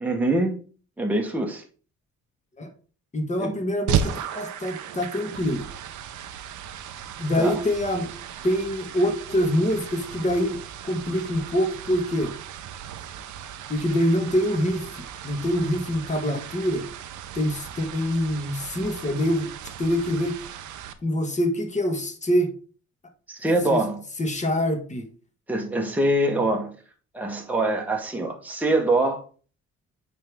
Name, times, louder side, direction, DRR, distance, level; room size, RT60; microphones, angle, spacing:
voice 1, 0.0-0.6 1.0-1.6 3.4-3.5 7.4-7.6 23.3-24.0 25.5-26.7 27.1-29.2, right 1 dB, 5° right, 1.1 m, -24 dB
voice 2, 3.1-5.7 7.2-8.1 8.4-12.4 13.7-16.9 17.3-19.5 19.8-20.4 21.0-22.5 23.7-23.8 24.2-25.1, equal, 25° left, 1.5 m, -25 dB
sound 1, 3.9-20.9, right 9 dB, 75° right, 0.7 m, -35 dB
8.9 x 3.4 x 3.5 m
cardioid pair, 90°, 30 cm